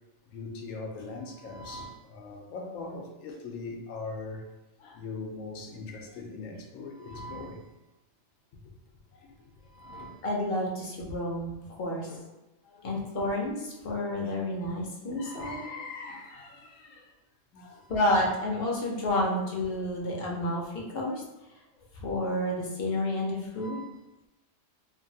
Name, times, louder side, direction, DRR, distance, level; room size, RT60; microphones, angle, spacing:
voice 1, 0.3-4.5 4.8-7.8 8.5-8.6 9.1-10.2 12.1-12.3 12.6-12.9 14.2-14.3 15.2-17.1 17.5-18.4 21.8-21.9 23.6-24.0, left 3 dB, 90° left, 2 dB, 1.0 m, -41 dB
voice 2, 10.2-12.1 12.8-15.6 17.9-21.2 21.9-23.8, left 1 dB, 55° left, -2 dB, 0.8 m, -30 dB
2.9 x 2.5 x 2.7 m, 1.0 s
omnidirectional pair, 1.3 m